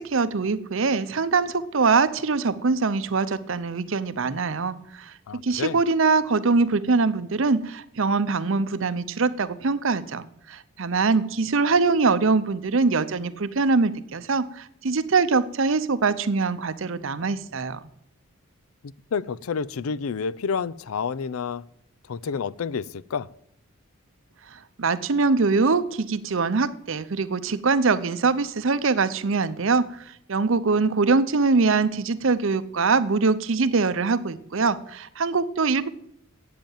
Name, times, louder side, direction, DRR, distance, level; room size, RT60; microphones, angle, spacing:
voice 1, 0.0-17.8 24.8-29.9 30.3-35.9, right 4 dB, 60° right, 14 dB, 0.6 m, -23 dB
voice 2, 5.3-5.8 18.8-21.6 22.1-23.3, left 6 dB, 80° left, 19 dB, 0.5 m, -29 dB
8.6 x 7.9 x 9.0 m, 0.74 s
head